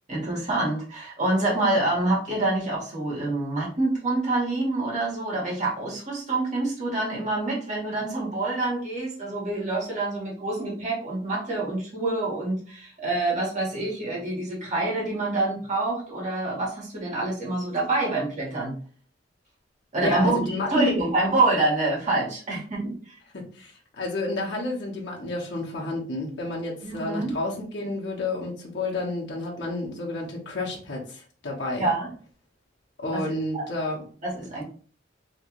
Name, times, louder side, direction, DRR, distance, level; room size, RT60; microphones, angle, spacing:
voice 1, 0.1-18.8 19.9-23.2 26.8-27.4 31.8-32.1 33.1-33.3 33.5-33.6 34.2-34.6, right 2 dB, 45° right, -4 dB, 1.6 m, -26 dB
voice 2, 20.0-21.0 22.5-22.6 23.3-31.9 33.0-34.0, left 2 dB, 65° left, -2 dB, 1.0 m, -30 dB
3.1 x 2.6 x 3.1 m, 0.42 s
head